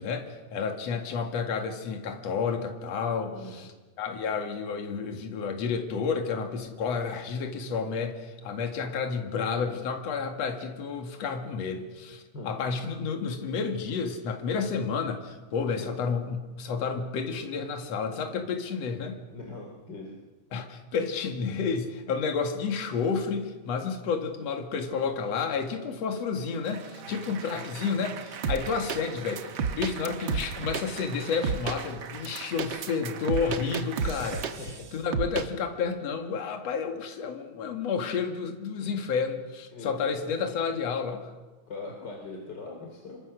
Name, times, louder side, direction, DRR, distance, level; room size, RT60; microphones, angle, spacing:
voice 1, 0.0-3.7 4.0-19.2 20.5-34.6 34.9-41.3, left 5 dB, 60° left, 5 dB, 3.1 m, -31 dB
voice 2, 3.3-3.7 12.3-12.5 15.8-15.9 19.0-20.1 27.1-27.3 34.6-34.7 39.7-40.0 41.7-43.2, left 3 dB, 35° left, 1 dB, 3.5 m, -41 dB
Applause, 26.1-34.6, right 8 dB, 75° right, 0.9 m, -43 dB
sound 1, 28.4-29.0 29.4-30.8 31.4-31.8 32.2-34.8 35.1-35.5, right 6 dB, 50° right, 1.6 m, -30 dB
27.5 x 23.5 x 6.6 m, 1.2 s
omnidirectional pair, 3.4 m